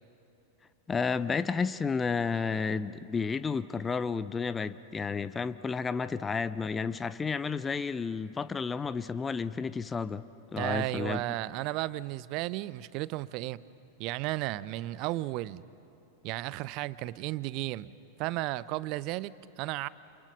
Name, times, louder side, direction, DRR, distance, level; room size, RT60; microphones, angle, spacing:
voice 1, 0.9-10.2 10.5-11.2, left 5 dB, 15° left, 0.6 m, -31 dB
voice 2, 10.6-13.6 14.0-15.6 16.2-19.9, right 17 dB, 40° right, 0.6 m, -34 dB
29.0 x 29.0 x 5.3 m
figure-of-eight pair, 90°, 0 cm